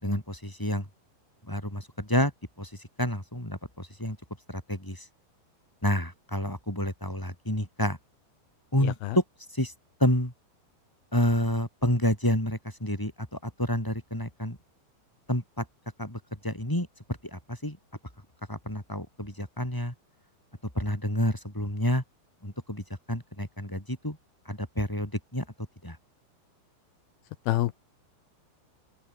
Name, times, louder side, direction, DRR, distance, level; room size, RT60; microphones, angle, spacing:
voice 1, 0.0-0.9 1.4-2.3 2.6-4.2 4.5-5.1 5.8-8.0 8.7-9.2 9.5-9.7 10.0-10.3 11.1-14.6 15.3-15.6 16.0-16.9 17.2-17.8 18.5-19.9 20.7-22.0 22.4-24.2 24.5-25.5 25.8-26.0, left 1 dB, 5° left, 5.4 m, -29 dB
voice 2, 8.8-9.2 27.5-27.9, left 16 dB, 80° left, 2.2 m, -28 dB
open air
omnidirectional pair, 5.4 m